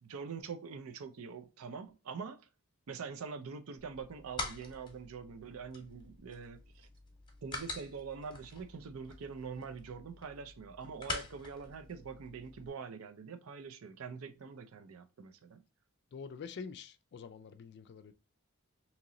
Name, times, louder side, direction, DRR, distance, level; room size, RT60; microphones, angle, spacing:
voice 1, 0.0-2.4 2.9-6.9 7.4-15.6, right 5 dB, 70° right, 0.5 m, -44 dB
sound 1, 3.8-12.7, left 2 dB, 20° left, 0.9 m, -46 dB
voice 2, 16.1-18.1, left 5 dB, 50° left, 0.3 m, -46 dB
3.0 x 2.9 x 3.7 m
head